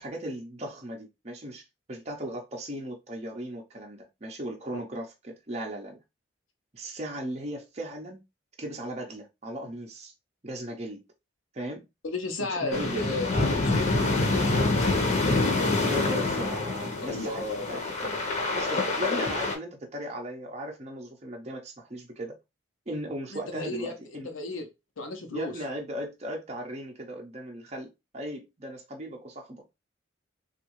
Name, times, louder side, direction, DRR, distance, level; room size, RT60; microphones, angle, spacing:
voice 1, 0.0-1.6 1.9-6.0 6.7-8.2 8.6-10.1 10.4-11.0 11.5-11.9 12.4-13.0 15.8-18.2 18.5-22.4 22.9-24.3 25.3-29.7, right 1 dB, 30° right, 0.6 m, -37 dB
voice 2, 12.0-15.0 17.0-17.7 23.3-24.7 25.0-25.6, left 2 dB, 80° left, 0.8 m, -34 dB
sound 1, 12.7-19.5, left 2 dB, 35° left, 0.8 m, -26 dB
3.5 x 2.4 x 3.0 m
head